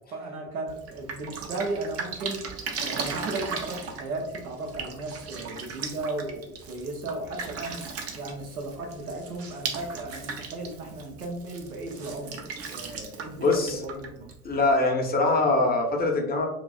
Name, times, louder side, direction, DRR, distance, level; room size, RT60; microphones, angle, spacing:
voice 1, 0.1-2.5 2.8-7.9 8.1-12.4 12.7-14.3, right 2 dB, 90° right, 1 dB, 0.6 m, -35 dB
Drip, 0.7-14.8, right 5 dB, 35° right, 0.5 m, -37 dB
voice 2, 13.4-13.8 14.4-16.5, left 2 dB, 20° left, 1 dB, 0.6 m, -23 dB
3.1 x 2.3 x 2.3 m, 0.85 s
figure-of-eight pair, 60°, 42 cm